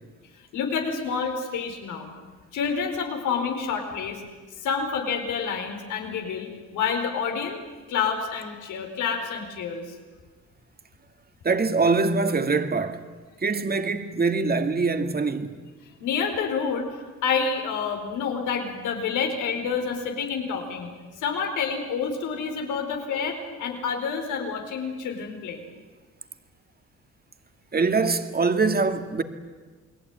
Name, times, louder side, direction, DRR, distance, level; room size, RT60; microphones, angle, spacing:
voice 1, 0.5-2.1 2.5-4.2 4.6-7.6 7.9-9.9 16.0-16.9 17.2-20.9 21.2-25.6, left 6 dB, 90° left, 4.7 m, -28 dB
voice 2, 11.4-13.1 13.4-15.6 27.7-29.2, right 4 dB, 30° right, 2.3 m, -23 dB
29.5 x 20.5 x 9.6 m
cardioid pair, 90°, 30 cm